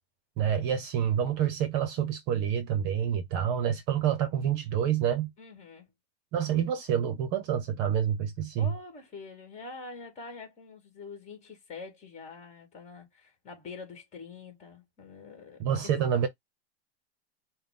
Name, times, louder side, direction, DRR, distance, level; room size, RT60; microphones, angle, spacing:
voice 1, 0.4-5.3 6.3-8.7 15.6-16.3, right 9 dB, 35° right, 1.0 m, -27 dB
voice 2, 5.4-5.9 8.6-15.9, left 4 dB, 20° left, 2.2 m, -45 dB
5.6 x 2.4 x 3.8 m
supercardioid pair, 160°, 31 cm